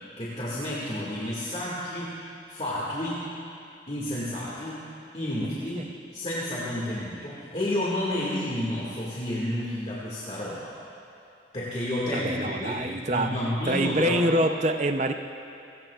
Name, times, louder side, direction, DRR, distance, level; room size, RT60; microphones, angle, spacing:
voice 1, 0.2-2.2 2.5-3.3 3.9-10.8 11.5-14.3, left 1 dB, 35° left, -7 dB, 2.0 m, -31 dB
voice 2, 12.1-13.4 13.6-15.1, right 1 dB, 40° right, 7 dB, 0.6 m, -25 dB
28.5 x 17.0 x 2.4 m, 2.6 s
head